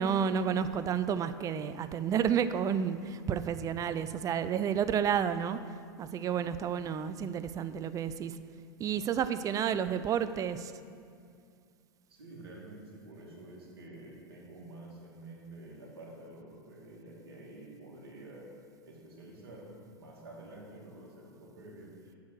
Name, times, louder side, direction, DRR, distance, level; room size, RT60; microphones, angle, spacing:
voice 1, 0.0-5.6 6.0-8.3 8.8-10.7, right 8 dB, 25° right, 12 dB, 0.4 m, -30 dB
voice 2, 12.1-18.4 18.9-22.2, right 2 dB, 80° right, -3 dB, 2.3 m, -49 dB
8.3 x 6.3 x 6.3 m, 2.3 s
hypercardioid pair, 95°, 13 cm